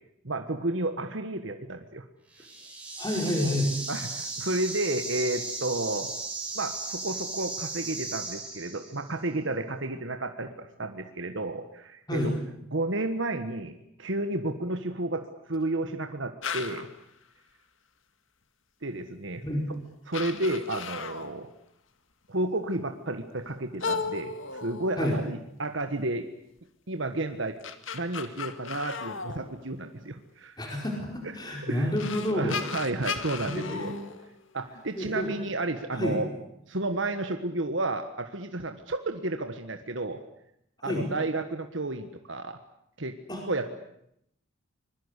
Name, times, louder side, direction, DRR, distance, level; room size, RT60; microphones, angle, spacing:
voice 1, 0.2-2.0 3.9-6.1 6.5-12.3 12.7-16.9 18.8-19.4 20.1-21.5 22.3-26.3 26.9-27.6 27.9-30.6 31.6-31.9 32.3-33.9 34.5-36.3 36.7-40.2 40.8-42.6 43.0-43.1 43.5-43.7, right 2 dB, 65° right, 7 dB, 1.5 m, -32 dB
sound 1, 2.3-9.0, right 3 dB, 5° right, 7.2 m, -36 dB
voice 2, 3.0-3.7 12.1-12.3 19.4-19.6 25.0-25.2 30.6-32.6 33.4-33.9 34.9-35.3 35.9-36.2 40.8-41.0 43.3-43.4, left 1 dB, 20° left, 0 dB, 4.7 m, -29 dB
sound 2, 16.4-17.0 19.0-19.1 19.8-19.9 20.1-21.4 23.8-25.4 27.3-30.1 31.5-31.6 32.0-34.8, left 5 dB, 70° left, 2.0 m, -36 dB
25.5 x 21.5 x 8.2 m, 0.75 s
head